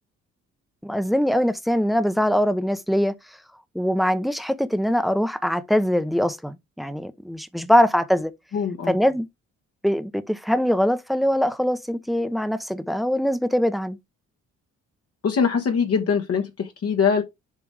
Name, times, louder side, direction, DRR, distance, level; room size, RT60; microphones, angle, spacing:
voice 1, 0.8-3.1 3.7-8.3 8.9-9.3 9.8-14.0, equal, ahead, 0.8 m, -22 dB
voice 2, 8.5-9.0 15.2-17.2, left 6 dB, 50° left, 1.3 m, -22 dB
7.3 x 3.2 x 4.8 m
cardioid pair, 90°, 30 cm